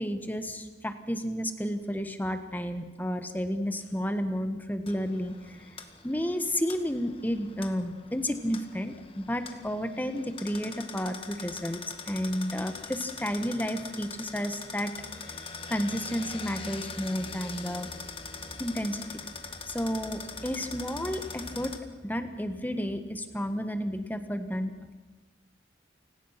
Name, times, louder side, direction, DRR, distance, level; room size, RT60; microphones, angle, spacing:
voice 1, 0.0-5.6 6.0-14.9 15.2-15.3 15.7-17.9 18.6-19.0 19.6-21.7 22.0-24.7, equal, 10° left, 8 dB, 1.5 m, -32 dB
sound 1, 4.9-21.8, left 4 dB, 30° left, 1.6 m, -42 dB
29.5 x 18.0 x 6.0 m, 1.2 s
head